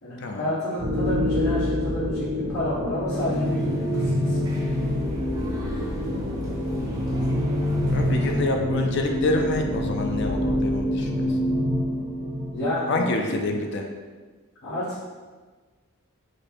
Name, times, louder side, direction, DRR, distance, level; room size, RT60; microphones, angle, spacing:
voice 1, 0.0-4.5 12.5-13.6 14.6-15.0, equal, 80° left, -12 dB, 1.5 m, -30 dB
sound 1, 0.8-12.8, left 1 dB, 40° right, 1.0 m, -26 dB
sound 2, 3.1-8.4, right 1 dB, 15° right, 0.6 m, -39 dB
voice 2, 7.9-11.3 12.9-13.9, left 2 dB, 50° left, 3 dB, 0.4 m, -27 dB
5.1 x 2.2 x 4.3 m, 1.4 s
head